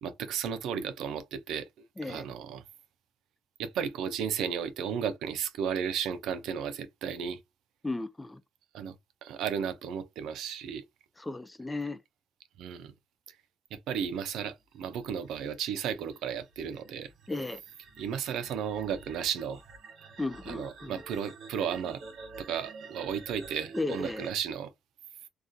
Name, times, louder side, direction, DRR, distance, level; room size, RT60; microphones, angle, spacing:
voice 1, 0.0-1.7 2.1-2.6 3.6-7.4 8.7-8.9 9.2-10.8 12.6-12.9 13.7-17.1 18.0-19.6 20.5-22.0 22.4-24.7, right 8 dB, 85° right, 0.4 m, -34 dB
voice 2, 7.8-8.4 11.2-12.0 17.3-17.6 20.2-21.0 23.7-24.2, left 2 dB, 15° left, 0.3 m, -35 dB
sound 1, 15.0-24.3, right 4 dB, 60° right, 0.9 m, -49 dB
2.3 x 2.2 x 2.5 m
cardioid pair, 90°, 0 cm